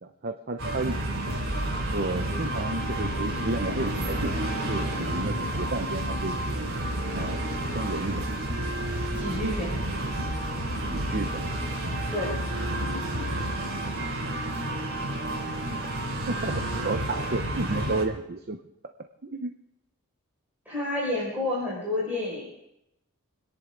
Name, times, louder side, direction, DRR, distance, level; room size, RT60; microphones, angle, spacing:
voice 1, 0.0-1.0 1.9-6.7 7.1-7.5 7.7-8.4 10.9-11.5 15.8-15.9 16.3-18.6 19.2-19.6, right 2 dB, 45° right, 5 dB, 0.8 m, -32 dB
sound 1, 0.6-18.0, right 1 dB, 60° right, 3.5 m, -30 dB
voice 2, 9.1-9.8 12.1-12.3 20.7-22.5, left 2 dB, 10° right, -8 dB, 5.4 m, -29 dB
28.0 x 10.5 x 3.8 m, 0.85 s
head